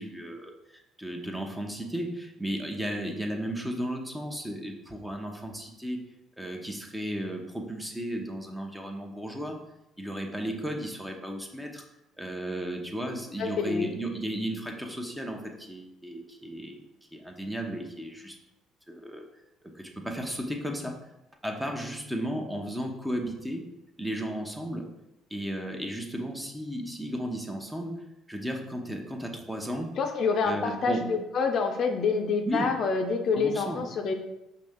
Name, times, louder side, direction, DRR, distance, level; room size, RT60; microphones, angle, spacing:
voice 1, 0.0-6.1 6.4-9.6 10.0-11.8 12.2-16.8 17.1-18.4 18.9-19.2 19.7-21.0 21.4-23.7 24.0-24.9 25.3-29.9 30.4-31.2 32.5-32.8 33.3-33.8, equal, 10° right, 2 dB, 0.9 m, -34 dB
voice 2, 13.4-13.9 30.0-34.1, left 4 dB, 55° left, 4 dB, 0.5 m, -27 dB
5.1 x 2.8 x 3.6 m, 0.89 s
hypercardioid pair, 60°, 0 cm